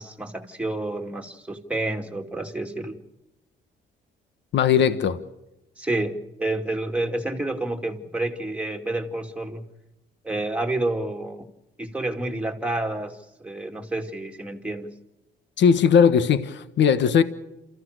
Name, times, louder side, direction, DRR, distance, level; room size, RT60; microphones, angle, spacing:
voice 1, 0.0-3.0 5.8-9.6 10.2-11.5 11.8-14.9, right 2 dB, 5° right, 2 dB, 2.7 m, -29 dB
voice 2, 4.5-5.2 15.6-17.2, left 7 dB, 65° left, 12 dB, 1.4 m, -18 dB
28.0 x 15.0 x 6.7 m, 0.95 s
cardioid pair, 90°, 20 cm